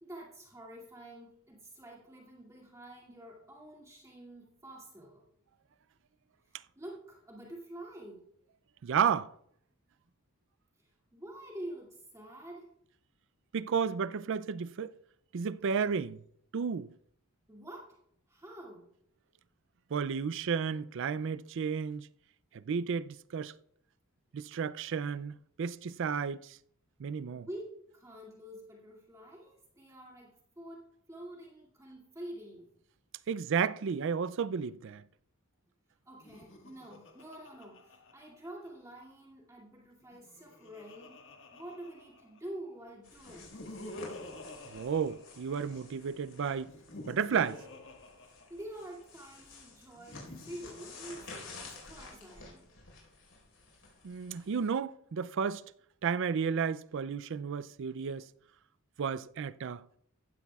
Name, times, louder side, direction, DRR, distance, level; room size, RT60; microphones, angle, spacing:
voice 1, 0.0-5.2 6.8-8.3 10.8-12.7 17.5-18.0 18.3-18.9 27.3-32.7 36.0-41.2 41.5-43.5 48.2-52.7, right 1 dB, 15° right, 2.4 m, -47 dB
voice 2, 8.8-9.3 13.5-14.9 15.3-16.2 16.5-16.9 19.9-22.1 22.5-23.5 24.3-26.6 27.0-27.5 33.3-35.0 44.7-46.7 47.0-47.6 54.0-55.6 56.0-58.3 59.0-59.8, right 6 dB, 60° right, 0.4 m, -32 dB
Laughter, 36.2-38.9 40.0-42.6 43.3-46.0 46.6-49.0 49.9-52.0, left 1 dB, 60° left, 1.7 m, -50 dB
sound 1, 43.0-54.7, left 3 dB, 80° left, 4.5 m, -52 dB
15.5 x 12.5 x 2.4 m
head